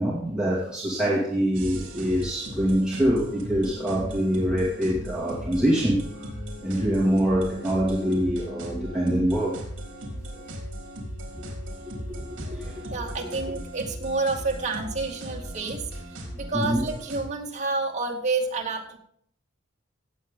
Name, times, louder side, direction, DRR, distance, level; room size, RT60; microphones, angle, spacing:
voice 1, 0.0-6.0 6.6-9.6 12.1-13.0 16.5-16.8, equal, 5° right, -7 dB, 2.3 m, -25 dB
sound 1, 1.5-17.3, equal, 60° right, 3.7 m, -37 dB
voice 2, 12.9-15.9 16.4-19.0, right 3 dB, 35° right, -1 dB, 2.3 m, -29 dB
17.5 x 7.5 x 3.8 m, 0.65 s
head